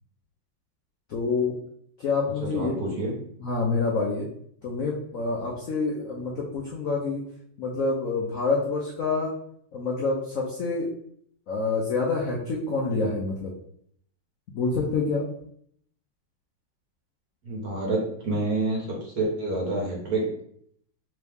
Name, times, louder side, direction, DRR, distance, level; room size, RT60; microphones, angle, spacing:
voice 1, 1.1-1.5 2.0-2.8 3.4-4.3 4.6-7.2 7.6-9.3 9.7-10.9 11.5-13.5 14.5-15.3, left 3 dB, 90° left, -2 dB, 0.7 m, -27 dB
voice 2, 2.4-3.1 17.4-20.3, right 2 dB, 55° right, -3 dB, 1.4 m, -28 dB
3.6 x 3.1 x 3.4 m, 0.65 s
omnidirectional pair, 2.3 m